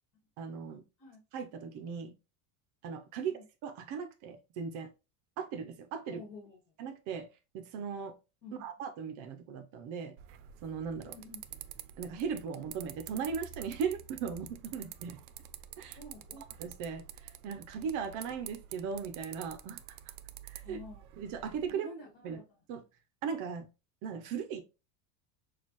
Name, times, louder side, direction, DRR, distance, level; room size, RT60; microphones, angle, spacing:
voice 1, 0.4-0.8 1.3-2.1 2.8-3.3 3.6-4.9 5.4-6.2 6.8-7.3 7.5-8.1 8.6-10.1 10.6-11.1 12.0-15.2 15.8-16.0 16.6-19.8 20.4-20.8 21.2-21.9 22.2-22.4 22.7-22.8 23.2-23.7 24.0-24.6, right 6 dB, 45° right, 0.6 m, -38 dB
voice 2, 6.1-6.6 8.4-8.7 11.0-11.4 15.9-16.4 20.6-21.0 21.7-22.4, left 2 dB, 50° left, 1.6 m, -49 dB
sound 1, 10.2-21.7, right 10 dB, 90° right, 0.7 m, -49 dB
6.4 x 2.4 x 2.9 m
cardioid pair, 170°, 44 cm